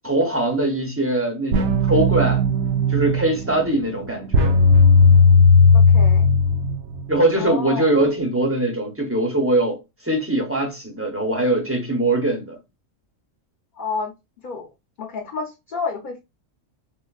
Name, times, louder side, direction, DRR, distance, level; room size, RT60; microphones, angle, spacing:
voice 1, 0.0-2.4 2.9-4.6 7.1-12.6, right 1 dB, 15° right, 0.6 m, -22 dB
sound 1, 1.5-7.1, left 3 dB, 65° right, 0.7 m, -16 dB
voice 2, 5.7-6.3 7.4-7.9 13.8-14.1 14.4-14.7 15.0-16.2, left 4 dB, 45° left, 0.8 m, -30 dB
4.8 x 2.1 x 2.3 m
omnidirectional pair, 1.3 m